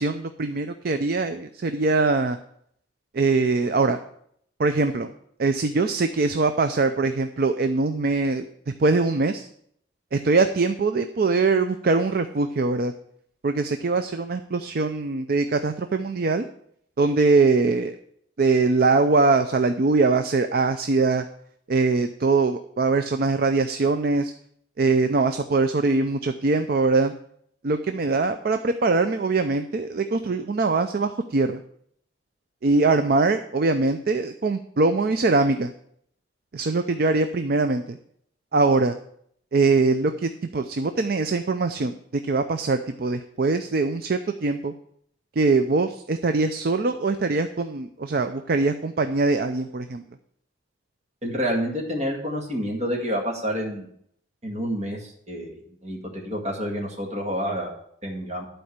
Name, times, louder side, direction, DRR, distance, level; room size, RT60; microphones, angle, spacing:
voice 1, 0.0-2.4 3.1-4.0 4.6-5.1 5.4-8.5 8.8-9.5 10.1-12.9 13.4-16.4 17.0-18.0 18.4-21.2 21.7-24.3 24.8-27.1 27.6-31.6 32.6-35.7 36.5-38.0 38.5-39.0 39.5-42.0 42.2-44.7 45.4-50.0, right 3 dB, 50° right, 8 dB, 0.5 m, -22 dB
voice 2, 51.2-53.9 54.4-58.4, equal, 35° right, -1 dB, 2.1 m, -29 dB
11.5 x 4.5 x 6.6 m, 0.68 s
head